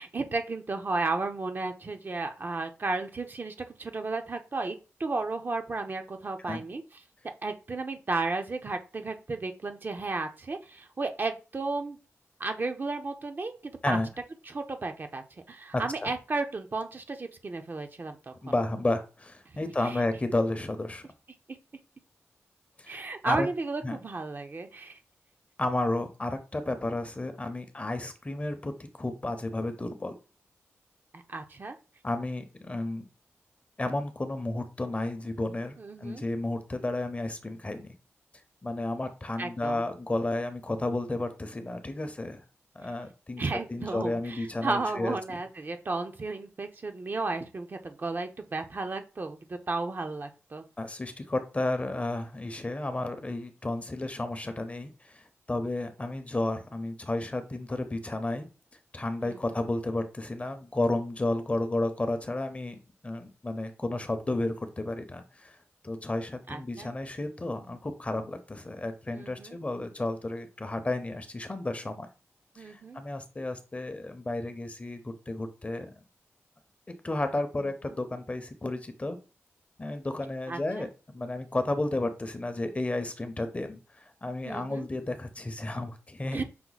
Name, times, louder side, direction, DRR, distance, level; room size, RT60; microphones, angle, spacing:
voice 1, 0.0-6.8 7.2-12.0 12.4-14.0 14.5-18.3 19.8-20.0 21.5-21.6 22.9-25.0 31.1-31.8 35.8-36.2 39.4-39.8 43.4-50.6 59.2-59.5 66.5-66.9 69.1-69.6 72.6-73.0 77.6-77.9 80.5-80.9 84.4-84.9 86.3-86.4, right 3 dB, 45° right, 5 dB, 0.6 m, -33 dB
voice 2, 15.7-16.1 18.4-21.0 22.8-23.5 23.8-24.0 25.6-28.7 29.0-30.1 32.0-33.1 33.8-37.9 38.6-42.4 42.7-43.4 43.7-45.4 50.8-58.5 58.9-62.8 63.0-65.6 65.8-72.1 72.5-75.9 77.0-79.2 79.8-86.4, left 2 dB, 30° left, 8 dB, 0.7 m, -32 dB
5.8 x 2.2 x 4.0 m, 0.33 s
wide cardioid pair, 80°, 5 cm